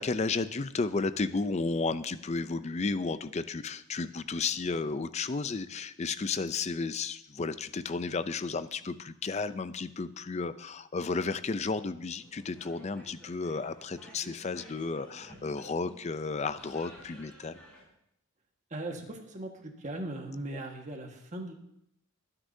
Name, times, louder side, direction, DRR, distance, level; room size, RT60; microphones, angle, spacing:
voice 1, 0.0-17.6, left 4 dB, 30° left, 13 dB, 0.4 m, -33 dB
sound 1, 12.2-17.8, equal, 5° left, 3.9 m, -53 dB
voice 2, 18.7-21.5, right 1 dB, 35° right, 2 dB, 1.6 m, -39 dB
22.0 x 9.7 x 2.7 m, 0.76 s
head